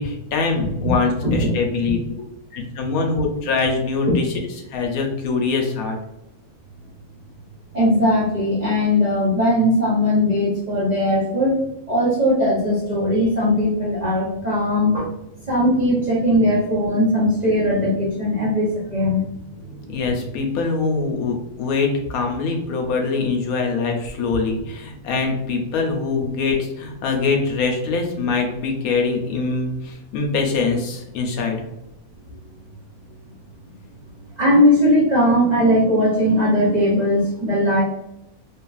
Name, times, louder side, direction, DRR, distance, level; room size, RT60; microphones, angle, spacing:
voice 1, 0.0-2.0 2.5-4.2 4.7-6.0 19.9-31.6, left 4 dB, 75° left, 2 dB, 1.0 m, -23 dB
voice 2, 0.6-0.9 1.2-1.5 4.1-4.2 7.7-11.6 11.9-15.1 15.4-19.2 32.3-32.4 34.4-37.8, left 1 dB, 55° right, -6 dB, 0.4 m, -19 dB
2.9 x 2.4 x 2.3 m, 0.85 s
omnidirectional pair, 1.6 m